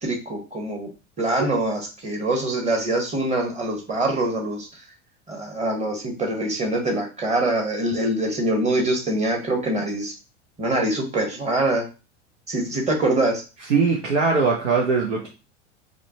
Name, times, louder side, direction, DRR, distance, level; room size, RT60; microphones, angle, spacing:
voice 1, 0.0-0.9 1.2-4.7 5.3-10.1 10.6-11.8 12.5-13.4, right 1 dB, 20° right, 1 dB, 1.2 m, -24 dB
voice 2, 13.6-15.3, right 4 dB, 80° right, 0 dB, 0.8 m, -21 dB
4.9 x 2.2 x 2.9 m, 0.32 s
figure-of-eight pair, 85°, 37 cm